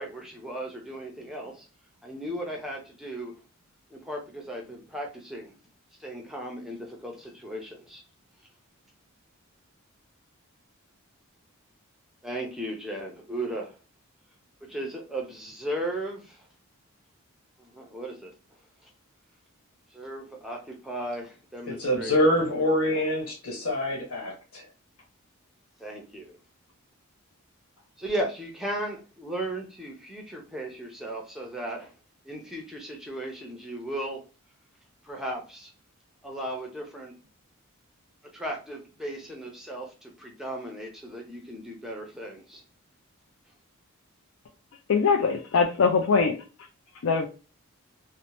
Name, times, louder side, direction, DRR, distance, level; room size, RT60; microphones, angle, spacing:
voice 1, 0.0-1.6 2.0-3.3 3.9-5.5 6.0-8.0 12.2-13.8 14.6-16.5 17.6-18.3 18.8-18.9 19.9-22.4 22.9-23.0 25.8-26.4 28.0-31.9 32.2-34.2 35.0-35.7 36.2-37.1 38.3-42.6, right 1 dB, ahead, 0.5 m, -36 dB
voice 2, 21.7-24.6, left 1 dB, 85° left, 1.3 m, -25 dB
voice 3, 44.9-46.4 47.0-47.3, left 5 dB, 70° left, 0.4 m, -22 dB
2.7 x 2.1 x 2.9 m
head